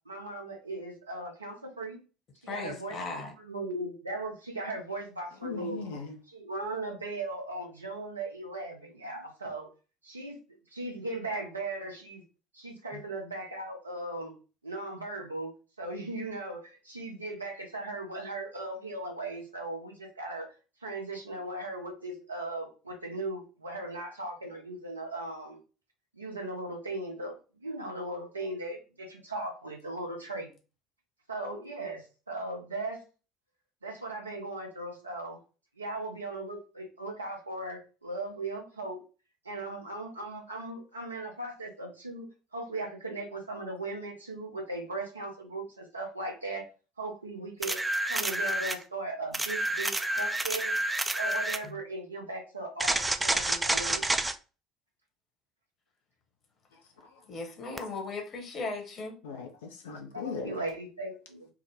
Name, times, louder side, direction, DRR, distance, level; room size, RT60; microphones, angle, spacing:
voice 1, 0.1-2.0 2.4-3.2 3.4-5.8 6.3-9.7 10.0-10.4 10.7-12.2 12.5-14.3 14.6-15.5 15.8-20.5 20.8-25.6 26.1-30.5 31.3-33.0 33.8-35.4 35.8-39.0 39.4-46.6 47.0-47.8 48.1-50.8 51.2-54.0 60.1-61.5, right 2 dB, 85° right, 0.7 m, -38 dB
voice 2, 2.5-3.3 12.9-13.0 51.6-51.8 57.3-59.2, left 3 dB, 45° left, 1.0 m, -37 dB
voice 3, 5.4-6.2 56.7-57.3 59.2-60.6, left 5 dB, 70° left, 0.4 m, -40 dB
sound 1, 47.6-48.8 49.3-51.7 52.8-54.4 57.8-57.9, right 1 dB, 15° right, 0.3 m, -29 dB
3.5 x 2.1 x 3.0 m
figure-of-eight pair, 60°, 0 cm